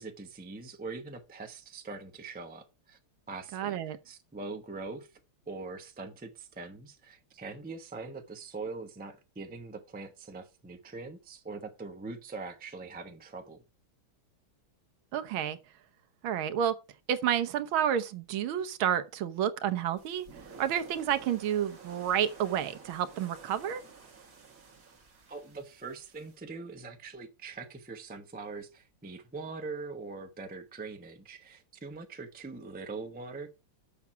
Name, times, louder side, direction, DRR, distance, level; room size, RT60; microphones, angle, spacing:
voice 1, 0.0-3.0 3.3-5.2 5.5-13.6 25.3-33.5, right 3 dB, 10° right, 0.5 m, -42 dB
voice 2, 3.5-4.0 15.1-15.6 16.2-16.7 17.1-20.3 20.6-23.8, right 9 dB, 80° right, 1.6 m, -30 dB
sound 1, 20.0-26.4, right 5 dB, 45° right, 2.0 m, -52 dB
7.1 x 6.0 x 5.6 m
omnidirectional pair, 2.2 m